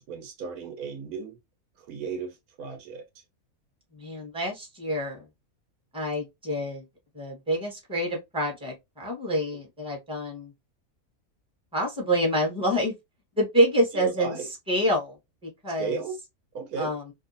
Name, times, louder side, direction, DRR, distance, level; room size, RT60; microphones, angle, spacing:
voice 1, 0.0-1.4 1.8-3.0 13.9-14.5 15.8-16.2 16.5-16.9, right 5 dB, 80° right, 1.3 m, -35 dB
voice 2, 4.0-5.2 5.9-6.8 7.1-10.5 11.7-12.9 13.4-14.3 14.7-15.2 15.4-16.0 16.8-17.0, equal, 5° right, 1.0 m, -27 dB
2.7 x 2.6 x 2.6 m
omnidirectional pair, 1.5 m